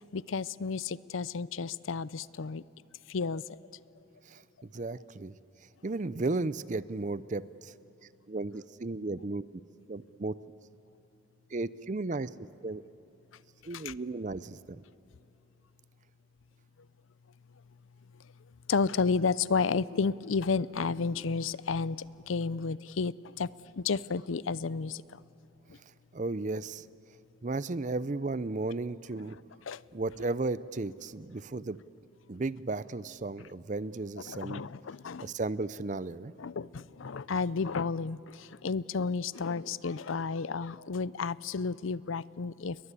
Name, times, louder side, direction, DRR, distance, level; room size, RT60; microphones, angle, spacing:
voice 1, 0.1-2.6 3.1-3.4 13.7-13.9 18.7-23.5 23.8-25.2 29.7-29.8 34.3-35.3 36.4-42.8, left 4 dB, 85° left, 19 dB, 0.6 m, -32 dB
voice 2, 4.3-5.3 5.8-7.7 8.3-9.4 9.9-10.4 11.5-12.3 12.6-12.8 13.6-14.8 26.1-26.9 27.4-29.4 29.9-31.8 32.3-34.7 35.2-36.3, right 3 dB, 40° right, 17 dB, 0.5 m, -34 dB
29.5 x 22.5 x 8.3 m, 2.8 s
head